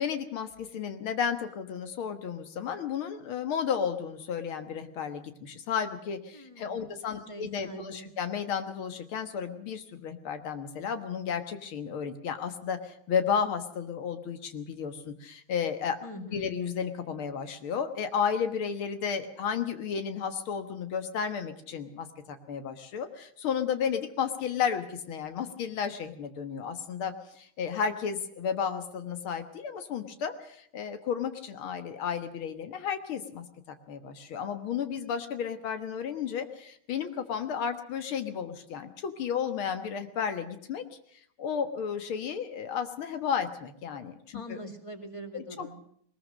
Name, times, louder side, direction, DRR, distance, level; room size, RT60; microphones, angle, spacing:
voice 1, 0.0-16.0 16.3-40.8 41.4-44.6 45.3-45.8, left 7 dB, 90° left, 8 dB, 2.3 m, -33 dB
voice 2, 6.3-8.1 16.0-16.5 44.3-45.8, equal, 15° left, 6 dB, 2.2 m, -43 dB
20.5 x 20.5 x 6.4 m, 0.67 s
omnidirectional pair, 2.2 m